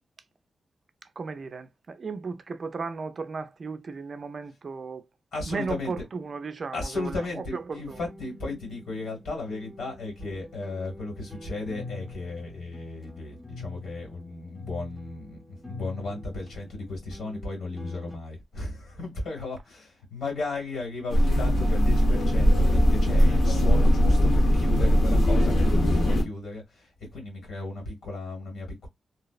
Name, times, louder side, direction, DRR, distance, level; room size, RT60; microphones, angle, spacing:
voice 1, 1.2-5.0 5.5-8.0, right 4 dB, 45° right, 0.3 m, -35 dB
voice 2, 5.3-5.9 6.7-28.9, left 3 dB, 90° left, 1.7 m, -35 dB
sound 1, 7.7-18.2, left 2 dB, 10° left, 0.6 m, -45 dB
sound 2, 21.1-26.2, equal, 70° left, 0.9 m, -20 dB
2.7 x 2.0 x 2.3 m
wide cardioid pair, 125°, 0 cm